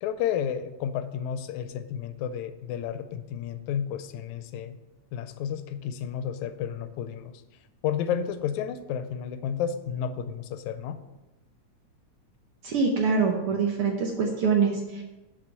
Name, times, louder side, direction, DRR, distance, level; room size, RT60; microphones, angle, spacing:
voice 1, 0.0-4.8 5.1-7.3 7.8-11.0, left 8 dB, 80° left, 11 dB, 1.9 m, -31 dB
voice 2, 12.6-15.0, right 5 dB, 65° right, 1 dB, 1.5 m, -24 dB
6.9 x 5.2 x 6.7 m, 1.0 s
omnidirectional pair, 3.3 m